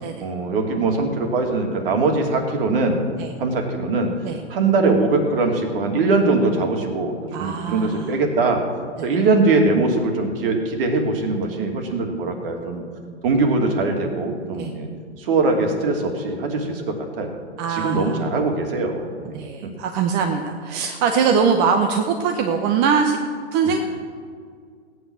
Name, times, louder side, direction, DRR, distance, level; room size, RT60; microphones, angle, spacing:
voice 1, 0.2-3.0 3.4-4.1 4.5-8.6 9.0-12.8 13.2-14.9 15.2-17.3 17.7-19.4 23.6-23.8, right 3 dB, 50° right, 4 dB, 2.8 m, -21 dB
voice 2, 7.3-8.1 14.6-14.7 17.6-18.2 19.3-23.2 23.5-23.8, right 6 dB, 30° right, 4 dB, 1.1 m, -22 dB
17.0 x 9.4 x 6.4 m, 2.1 s
hypercardioid pair, 135°, 35 cm